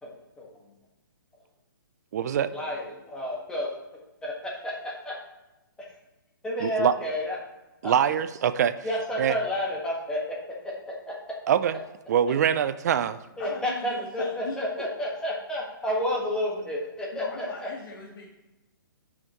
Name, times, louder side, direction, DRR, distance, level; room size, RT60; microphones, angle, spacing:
voice 1, 0.0-0.5 2.5-3.7 4.2-5.1 6.4-7.4 7.8-7.9 8.8-10.3 11.1-11.2 13.4-17.7, left 1 dB, 5° left, -3 dB, 1.6 m, -30 dB
voice 2, 2.1-2.5 6.6-6.9 7.8-8.8 9.2-9.3 11.5-11.8 12.1-13.2, right 9 dB, 45° right, 14 dB, 0.4 m, -23 dB
voice 3, 13.4-14.6 17.1-18.2, left 3 dB, 70° left, -4 dB, 1.7 m, -40 dB
13.5 x 5.8 x 3.0 m, 1.0 s
hypercardioid pair, 150°, 12 cm